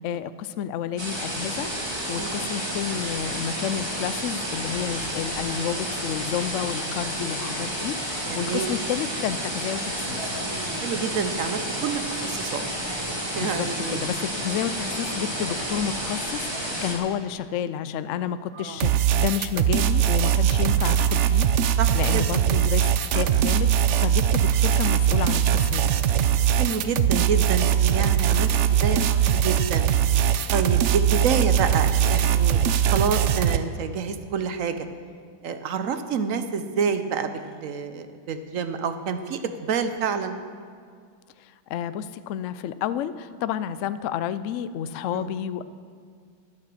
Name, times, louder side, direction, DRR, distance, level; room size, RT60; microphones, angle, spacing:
voice 1, 0.0-10.2 13.4-21.5 21.9-25.9 41.4-45.6, left 9 dB, 90° left, 14 dB, 0.6 m, -30 dB
sound 1, 1.0-16.9, right 1 dB, 15° right, 1.9 m, -30 dB
voice 2, 2.1-2.5 8.3-8.7 10.8-12.6 13.3-14.1 18.5-18.8 21.8-22.2 26.5-29.9 30.5-34.9 35.4-40.4 45.1-45.3, right 6 dB, 60° right, 9 dB, 0.9 m, -28 dB
sound 2, 18.8-33.6, right 9 dB, 80° right, 0.6 m, -21 dB
11.5 x 9.8 x 7.7 m, 2.1 s
omnidirectional pair, 1.9 m